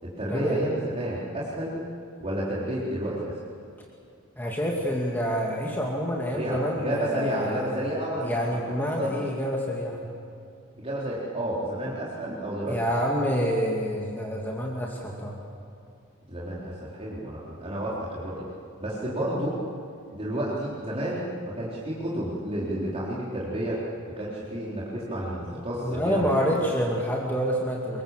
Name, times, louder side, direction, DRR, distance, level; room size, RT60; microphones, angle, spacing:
voice 1, 0.0-1.8 2.2-3.4 6.3-9.1 10.8-12.9 16.3-18.4 18.8-19.6 20.1-23.8 24.2-26.6, right 1 dB, 30° right, -7 dB, 3.8 m, -31 dB
voice 2, 4.4-7.9 8.2-10.2 12.7-15.4 25.8-28.0, equal, 10° left, -2 dB, 2.3 m, -28 dB
25.5 x 22.5 x 7.6 m, 2.4 s
head